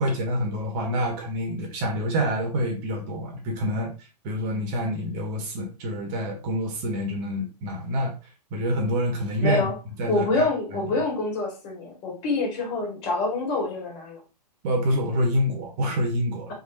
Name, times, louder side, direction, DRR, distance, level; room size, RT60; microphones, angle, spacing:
voice 1, 0.0-3.9 4.2-8.1 8.5-9.7 10.0-10.9 14.6-16.5, equal, 35° right, 2 dB, 1.3 m, -27 dB
voice 2, 9.4-9.7 10.1-14.2, left 3 dB, 40° left, -1 dB, 2.0 m, -26 dB
4.3 x 3.6 x 2.7 m, 0.31 s
hypercardioid pair, 120°, 21 cm